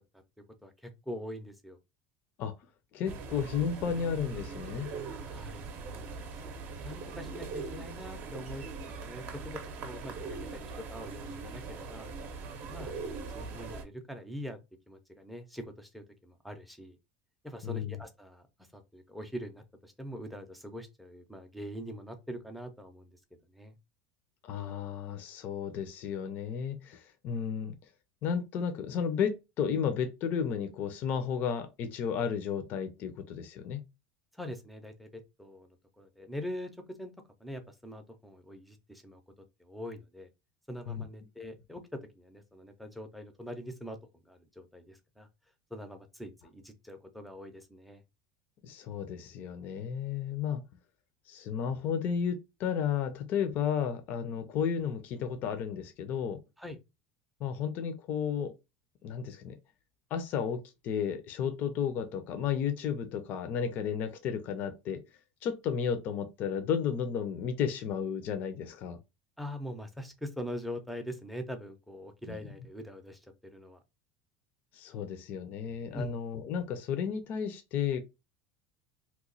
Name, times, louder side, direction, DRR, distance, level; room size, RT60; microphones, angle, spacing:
voice 1, 0.6-1.8 5.3-6.5 6.8-12.1 12.7-14.6 14.9-17.0 17.4-18.5 18.7-23.2 23.5-23.8 34.3-37.1 37.4-39.2 39.6-40.3 40.7-45.3 45.7-48.0 56.6-56.8 69.4-73.8 75.9-76.1, equal, ahead, 0.6 m, -43 dB
voice 2, 2.9-4.9 17.6-17.9 24.4-27.7 28.2-33.8 40.9-41.0 48.6-50.6 51.3-56.4 57.4-58.5 59.0-59.6 60.1-65.0 65.4-69.0 72.3-72.4 74.7-78.0, left 7 dB, 45° left, 0.5 m, -33 dB
sound 1, 3.1-13.8, right 4 dB, 45° right, 0.6 m, -41 dB
2.9 x 2.2 x 3.9 m
cardioid pair, 155°, 4 cm